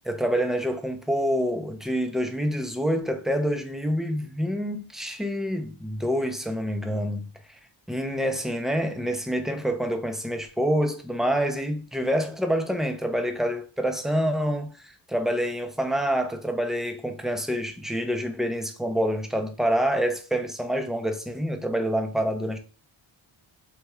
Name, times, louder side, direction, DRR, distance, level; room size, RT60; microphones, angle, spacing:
voice 1, 0.0-7.3 7.9-22.6, equal, ahead, 0.6 m, -27 dB
3.5 x 3.4 x 3.1 m
cardioid pair, 75°, 49 cm